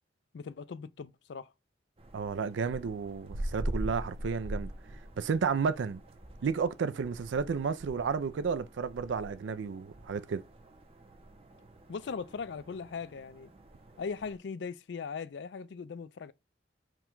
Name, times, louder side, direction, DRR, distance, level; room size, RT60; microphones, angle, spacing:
voice 1, 0.3-1.5 11.9-13.5 14.0-16.3, left 5 dB, 70° left, 0.4 m, -39 dB
sound 1, 2.0-14.4, right 1 dB, 30° right, 0.6 m, -43 dB
voice 2, 2.1-4.7 5.2-6.0 6.4-10.4, right 5 dB, 90° right, 0.4 m, -32 dB
4.6 x 2.2 x 3.7 m
head